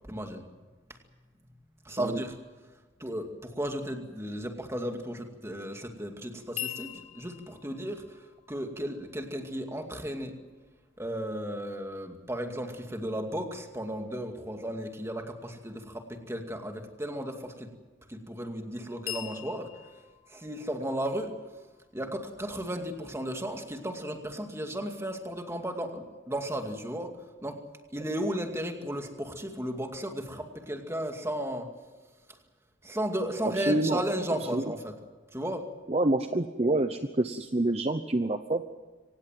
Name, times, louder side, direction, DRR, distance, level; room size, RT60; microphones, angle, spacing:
voice 1, 0.1-0.4 1.8-2.4 3.0-8.2 8.5-10.3 11.0-17.7 18.1-19.7 20.3-21.3 21.9-27.1 27.4-27.6 27.9-31.7 32.8-34.9 35.3-35.7, equal, 15° right, 4 dB, 2.3 m, -34 dB
sound 1, 6.6-10.6 19.1-22.8, left 13 dB, 80° left, 4.3 m, -44 dB
voice 2, 33.6-34.0 34.5-34.6 35.9-38.6, right 2 dB, 30° right, 9 dB, 0.8 m, -27 dB
25.0 x 18.5 x 7.6 m, 1.3 s
head